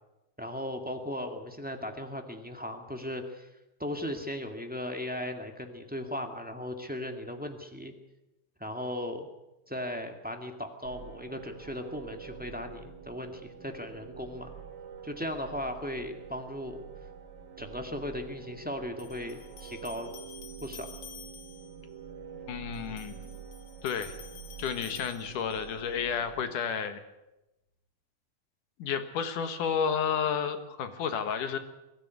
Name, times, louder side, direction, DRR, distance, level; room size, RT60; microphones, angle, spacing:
voice 1, 0.4-3.5 3.8-7.9 8.6-9.3 9.7-14.5 15.0-16.8 17.6-20.1 20.6-20.9, left 1 dB, 5° right, 4 dB, 0.9 m, -37 dB
sound 1, 10.8-26.5, right 7 dB, 80° right, 4.2 m, -47 dB
sound 2, 19.0-21.8 22.7-25.8, left 7 dB, 55° left, 2.7 m, -50 dB
voice 2, 22.5-23.3 23.8-24.1 24.6-27.0 28.8-31.6, left 7 dB, 75° left, 9 dB, 3.0 m, -31 dB
22.5 x 13.5 x 9.5 m, 0.97 s
omnidirectional pair, 3.8 m